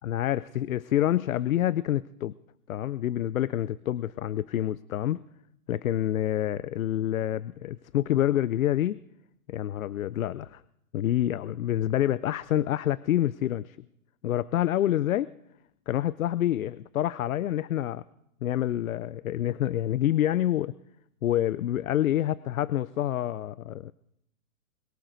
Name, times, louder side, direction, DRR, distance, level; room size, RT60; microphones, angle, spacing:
voice 1, 0.0-2.3 2.7-5.2 5.7-9.0 9.5-10.6 10.9-13.8 14.2-15.3 15.9-18.0 18.4-20.7 21.2-23.9, left 12 dB, 70° left, 19 dB, 0.5 m, -27 dB
22.0 x 12.5 x 3.9 m, 0.78 s
hypercardioid pair, 175°, 44 cm